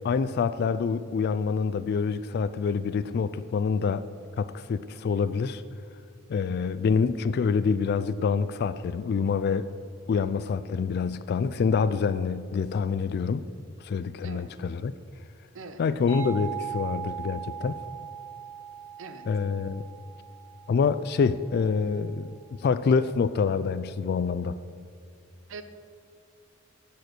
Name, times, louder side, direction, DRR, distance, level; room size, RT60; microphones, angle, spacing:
voice 1, 0.0-4.0 4.4-5.6 6.3-9.7 10.1-13.5 13.8-14.9 15.8-17.8 19.3-19.8 20.7-24.6, left 5 dB, 50° left, 14 dB, 0.3 m, -26 dB
voice 2, 14.2-14.5 15.5-15.8 19.0-19.3 25.5-25.6, right 4 dB, 70° right, 9 dB, 0.7 m, -42 dB
sound 1, 16.1-21.5, right 9 dB, 30° left, 2.0 m, -39 dB
10.5 x 5.1 x 7.8 m, 2.4 s
head